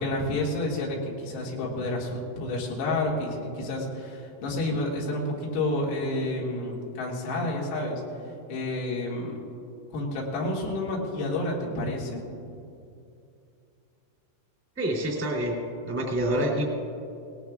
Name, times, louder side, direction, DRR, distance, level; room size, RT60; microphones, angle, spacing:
voice 1, 0.0-8.0 8.5-9.4 9.9-12.2, left 2 dB, 85° left, -3 dB, 4.9 m, -30 dB
voice 2, 14.7-15.6 15.8-16.6, right 1 dB, 5° right, -4 dB, 1.2 m, -27 dB
19.5 x 18.0 x 2.4 m, 2.6 s
omnidirectional pair, 5.9 m